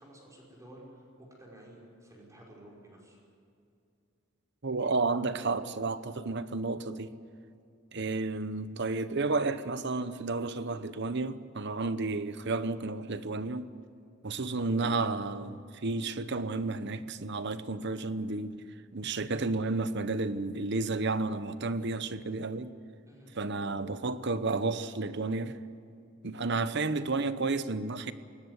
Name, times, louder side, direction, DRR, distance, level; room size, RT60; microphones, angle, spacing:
voice 1, 0.0-3.2 23.1-23.3, right 1 dB, 15° right, 5.4 m, -52 dB
voice 2, 4.6-7.1 7.9-13.7 14.2-18.6 18.9-22.7 23.3-25.6 26.2-28.1, right 3 dB, 55° right, 0.9 m, -32 dB
20.5 x 18.5 x 8.2 m
head